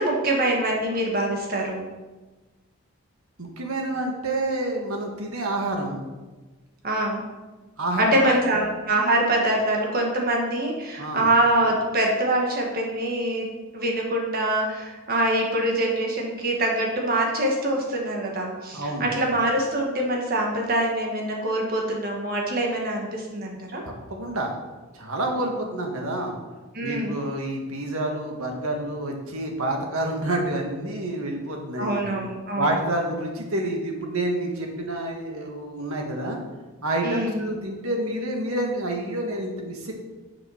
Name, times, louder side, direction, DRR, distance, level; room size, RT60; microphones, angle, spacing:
voice 1, 0.0-1.9 6.8-7.2 8.0-13.5 13.7-23.8 26.7-27.2 31.8-32.7 37.0-37.5, right 1 dB, 40° right, -1 dB, 1.7 m, -24 dB
voice 2, 3.4-6.0 7.8-8.4 11.0-11.2 18.7-19.1 23.8-24.5 24.9-26.3 26.8-32.0 32.6-36.4 36.8-39.9, right 1 dB, 80° right, 1 dB, 1.7 m, -28 dB
7.0 x 6.9 x 5.8 m, 1.2 s
head